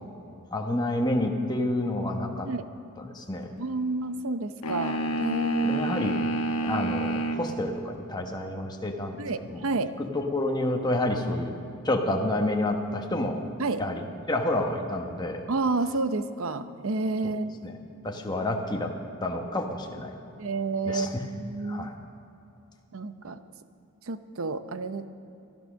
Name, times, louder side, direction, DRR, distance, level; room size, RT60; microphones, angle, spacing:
voice 1, 0.5-2.5 3.1-3.5 5.6-6.2 6.6-9.2 9.5-9.6 10.0-11.5 11.8-13.4 13.8-15.4 17.2-17.3 17.6-17.8 18.0-18.9 19.2-20.1 20.9-21.1 21.6-21.9, left 1 dB, 20° left, 2 dB, 1.2 m, -29 dB
voice 2, 3.6-5.9 9.2-9.9 13.6-13.8 15.5-17.6 20.4-21.9 22.9-23.4 24.1-25.1, right 3 dB, 60° right, 11 dB, 0.7 m, -30 dB
sound 1, 4.6-7.5, right 1 dB, 90° left, 1.2 m, -28 dB
14.5 x 12.5 x 6.3 m, 2.7 s
head